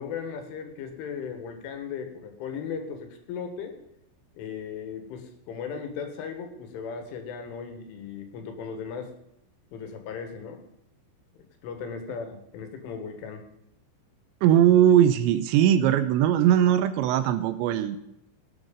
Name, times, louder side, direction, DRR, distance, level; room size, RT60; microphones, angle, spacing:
voice 1, 0.0-3.7 4.4-9.1 9.7-10.6 11.4-13.5, left 6 dB, 85° left, 6 dB, 4.0 m, -37 dB
voice 2, 14.4-18.0, right 10 dB, 80° right, 12 dB, 2.8 m, -20 dB
18.0 x 7.9 x 5.2 m, 0.85 s
omnidirectional pair, 5.5 m